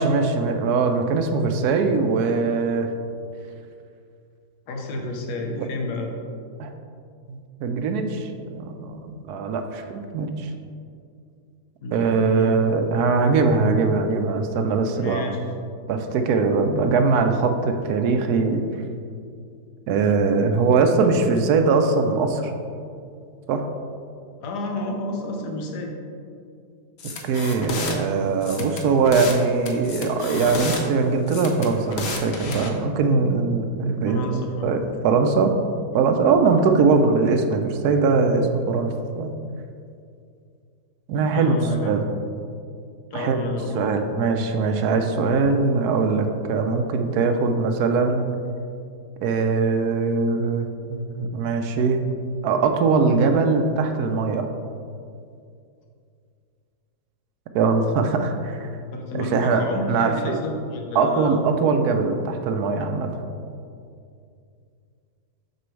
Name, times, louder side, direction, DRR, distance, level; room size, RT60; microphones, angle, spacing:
voice 1, 0.0-2.9 5.6-5.7 6.6-6.7 7.3-10.5 11.9-15.3 15.9-18.6 19.9-22.5 23.5-23.7 27.2-35.5 35.9-39.3 41.1-42.1 43.1-43.4 43.7-48.2 49.2-52.0 52.4-54.5 57.5-58.7 59.1-60.4 60.9-63.1, right 4 dB, 75° right, 6 dB, 1.1 m, -21 dB
voice 2, 4.7-6.1 11.8-12.5 14.9-15.4 24.4-25.9 34.1-34.8 41.2-41.9 43.1-43.9 58.9-61.4, left 2 dB, 75° left, 2 dB, 1.5 m, -31 dB
sound 1, 27.0-28.0 28.4-29.4 29.7-30.8 31.3-32.7, left 3 dB, 50° left, 0.8 m, -31 dB
6.8 x 6.3 x 3.2 m, 2.4 s
omnidirectional pair, 1.8 m